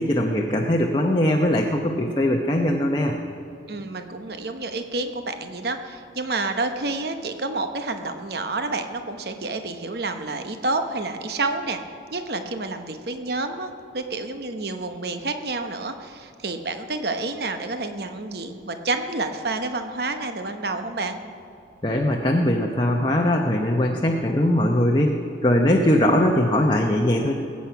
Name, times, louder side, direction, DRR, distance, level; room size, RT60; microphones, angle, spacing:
voice 1, 0.0-3.1 21.8-27.3, left 1 dB, 25° left, 0 dB, 0.8 m, -21 dB
voice 2, 3.7-11.8 12.1-21.2, right 3 dB, 55° right, 7 dB, 0.9 m, -29 dB
20.0 x 8.5 x 5.8 m, 2.7 s
head